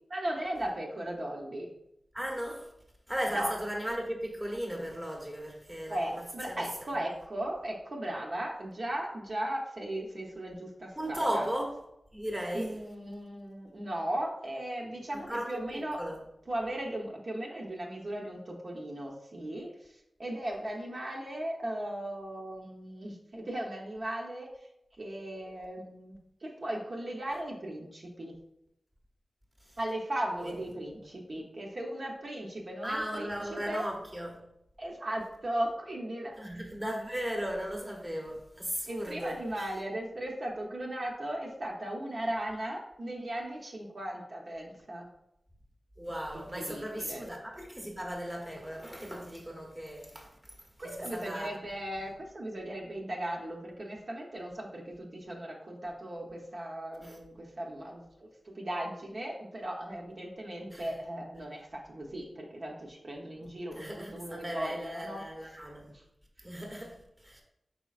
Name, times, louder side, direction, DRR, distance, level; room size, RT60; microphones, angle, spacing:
voice 1, 0.1-1.7 3.3-3.5 5.9-11.5 12.5-16.0 16.5-19.9 20.2-24.5 25.0-28.3 29.8-33.9 34.8-36.3 38.9-45.1 46.3-47.3 50.8-65.2 65.9-66.0, right 1 dB, 55° right, 0.8 m, -37 dB
voice 2, 2.1-2.7 3.1-6.7 7.0-7.1 11.0-11.8 12.1-12.8 15.1-16.2 30.4-30.5 30.9-31.1 32.8-34.4 36.4-39.7 46.0-50.5 50.8-51.6 57.0-57.2 60.7-60.9 63.7-65.9 66.4-67.4, equal, 10° right, 1.0 m, -37 dB
4.9 x 4.2 x 2.4 m
wide cardioid pair, 85°, 0 cm